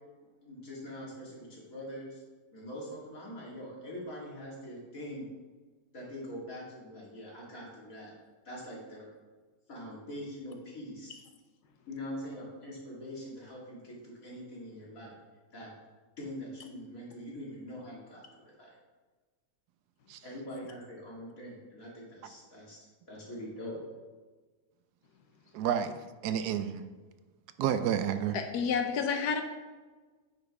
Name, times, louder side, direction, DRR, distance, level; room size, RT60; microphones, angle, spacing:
voice 1, 0.4-2.2 2.5-5.3 5.9-8.1 8.4-9.1 9.7-11.2 11.9-15.2 15.5-15.7 16.2-18.7 20.2-22.8 23.1-23.8, equal, 55° left, -5 dB, 2.8 m, -43 dB
voice 2, 25.5-26.8 27.6-28.4, right 9 dB, 80° right, 10 dB, 1.2 m, -30 dB
voice 3, 28.3-29.4, left 6 dB, 75° left, 6 dB, 1.3 m, -29 dB
9.1 x 5.2 x 4.7 m, 1.3 s
omnidirectional pair, 1.7 m